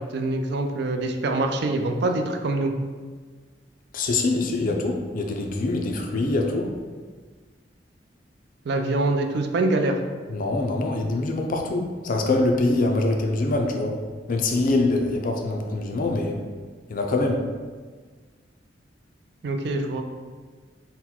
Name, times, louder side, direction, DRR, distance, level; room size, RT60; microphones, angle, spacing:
voice 1, 0.0-2.7 8.7-10.0 19.4-20.0, right 2 dB, 65° right, 5 dB, 0.4 m, -24 dB
voice 2, 3.9-6.7 10.3-14.0 14.3-16.4 16.9-17.4, left 2 dB, 50° left, 3 dB, 0.4 m, -24 dB
4.0 x 2.2 x 4.3 m, 1.5 s
head